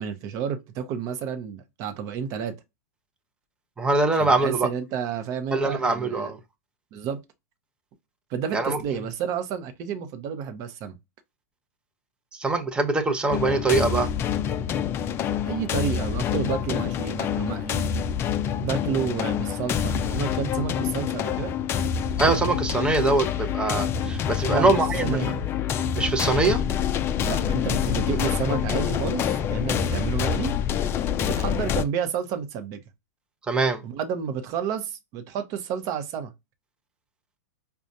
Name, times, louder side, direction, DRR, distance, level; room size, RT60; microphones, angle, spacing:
voice 1, 0.0-2.5 4.2-6.3 6.9-7.2 8.3-10.9 15.5-17.8 18.6-21.5 24.4-25.4 27.2-30.5 31.2-32.8 33.8-36.3, right 7 dB, 40° right, 0.8 m, -30 dB
voice 2, 3.8-4.7 5.5-6.4 8.5-8.8 12.3-14.1 22.2-25.2 25.9-26.6 33.5-33.8, right 3 dB, 10° right, 0.7 m, -23 dB
sound 1, 13.3-31.8, left 8 dB, 25° left, 0.4 m, -26 dB
5.1 x 2.3 x 2.6 m
hypercardioid pair, 115°, 9 cm